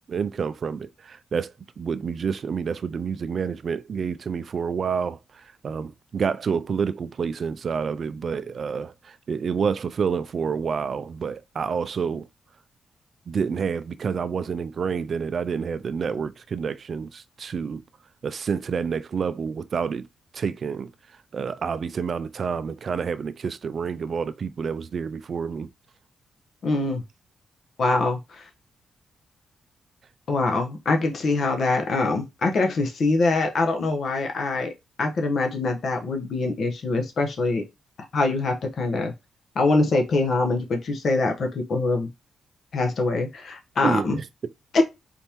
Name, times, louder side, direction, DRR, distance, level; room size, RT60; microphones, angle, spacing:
voice 1, 0.1-5.2 5.6-12.3 13.3-17.8 18.2-20.1 20.3-20.9 21.3-25.7 43.8-44.2, right 6 dB, 50° right, 0.3 m, -28 dB
voice 2, 26.6-27.0 27.8-28.4 30.3-34.7 35.0-37.6 38.1-39.1 39.5-42.1 42.7-44.2 44.7-44.8, left 3 dB, 55° left, 1.0 m, -24 dB
4.1 x 3.5 x 2.9 m
cardioid pair, 120°, 0 cm